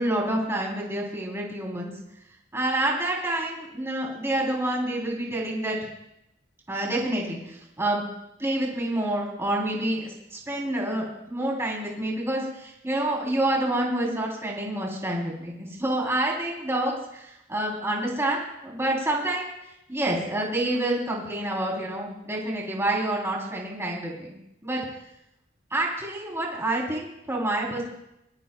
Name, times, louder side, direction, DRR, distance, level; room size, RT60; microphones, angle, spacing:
voice 1, 0.0-1.9 2.5-5.8 6.7-8.0 8.4-19.5 19.9-24.4 24.6-24.9 25.7-27.8, right 1 dB, 15° right, -3 dB, 3.4 m, -28 dB
22.0 x 16.0 x 2.3 m, 0.83 s
head